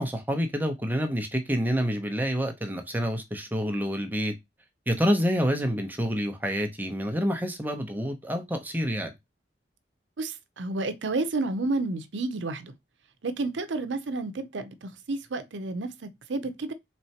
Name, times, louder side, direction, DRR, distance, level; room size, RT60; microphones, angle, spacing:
voice 1, 0.0-4.3 4.9-9.1, equal, 10° right, 0.7 m, -28 dB
voice 2, 10.2-12.7 13.2-16.7, right 3 dB, 80° right, 0.6 m, -31 dB
4.3 x 3.2 x 2.8 m
head